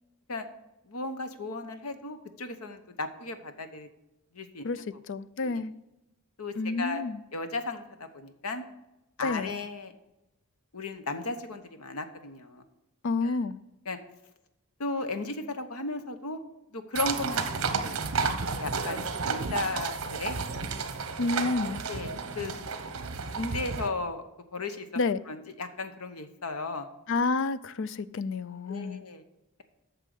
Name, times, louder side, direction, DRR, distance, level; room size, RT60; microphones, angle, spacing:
voice 1, 0.9-3.9 4.3-4.9 5.4-5.6 6.4-7.0 7.3-8.6 9.2-9.9 10.7-12.6 13.2-13.4 13.8-14.0 14.8-16.4 16.7-17.9 18.6-20.4 21.9-22.5 23.3-24.2 24.5-25.0 25.3-26.9 28.7-29.2, left 3 dB, 80° left, 1.0 m, -35 dB
voice 2, 5.1-5.7 6.6-7.2 9.2-9.6 13.0-13.6 21.2-21.8 25.0-25.2 27.1-29.0, left 3 dB, 55° left, 0.4 m, -29 dB
sound 1, 17.0-23.9, right 4 dB, 60° right, 1.0 m, -32 dB
9.0 x 6.6 x 6.6 m
head